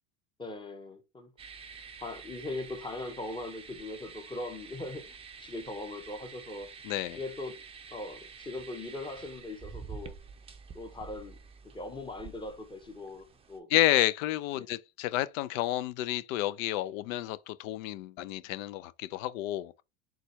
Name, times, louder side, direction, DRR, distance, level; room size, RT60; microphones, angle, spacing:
voice 1, 0.4-1.3 2.0-6.7 7.1-7.6 7.9-10.2 10.7-11.4 11.6-13.7 14.5-14.7, left 2 dB, 10° left, 0.8 m, -40 dB
sound 1, 1.4-13.6, right 5 dB, 15° right, 0.5 m, -48 dB
voice 2, 6.8-7.2 13.7-19.8, left 15 dB, 75° left, 0.5 m, -30 dB
4.0 x 2.3 x 4.4 m
supercardioid pair, 100°, 41 cm